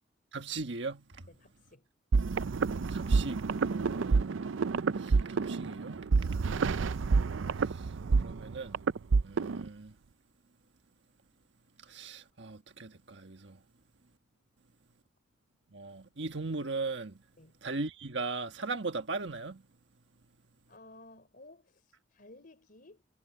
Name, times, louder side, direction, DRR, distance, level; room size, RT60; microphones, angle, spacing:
voice 1, 0.3-1.0 2.9-3.4 3.7-4.3 4.9-6.0 7.6-7.9 8.2-8.8 9.2-9.9 11.9-13.6 15.7-17.2 17.6-19.6, right 3 dB, 65° right, 1.4 m, -38 dB
voice 2, 1.3-1.9 17.4-17.6 20.7-23.0, left 2 dB, 50° left, 4.1 m, -55 dB
sound 1, 2.1-9.7, right 4 dB, 85° right, 0.5 m, -28 dB
head